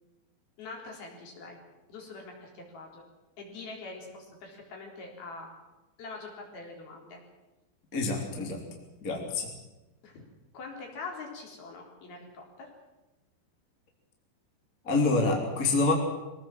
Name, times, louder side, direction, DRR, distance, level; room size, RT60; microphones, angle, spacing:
voice 1, 0.6-1.6 1.9-3.1 3.4-5.5 6.0-7.2 10.0-10.2 10.5-12.7, left 3 dB, 60° left, 0 dB, 5.7 m, -43 dB
voice 2, 7.9-8.6 9.0-9.5 14.8-15.9, left 3 dB, 20° left, 0 dB, 3.2 m, -26 dB
23.5 x 17.5 x 7.6 m, 1.1 s
omnidirectional pair, 5.1 m